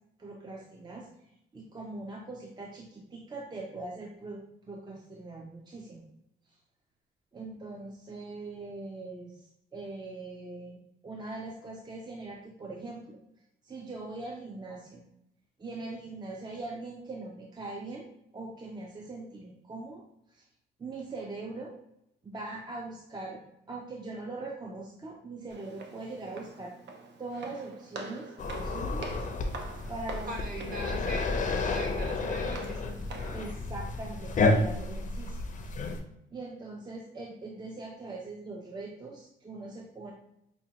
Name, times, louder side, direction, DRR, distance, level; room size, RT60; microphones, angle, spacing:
voice 1, 0.2-1.1 1.5-6.0 7.3-9.3 9.7-13.2 13.6-15.0 15.6-18.0 18.3-20.0 20.3-20.4 20.8-21.7 22.2-23.4 23.7-26.7 27.2-29.1 29.9-30.3 33.3-35.4 35.8-35.9 36.3-40.1, right 2 dB, 20° right, 0 dB, 0.5 m, -41 dB
Walk footsteps, 25.5-33.5, right 4 dB, 60° right, 0.7 m, -46 dB
sound 1, 28.4-36.0, left 3 dB, 40° left, 0.5 m, -31 dB
voice 2, 30.3-31.3 31.6-32.9, right 1 dB, 45° right, -1 dB, 1.3 m, -39 dB
5.3 x 2.2 x 2.8 m, 0.78 s
cardioid pair, 90°, 20 cm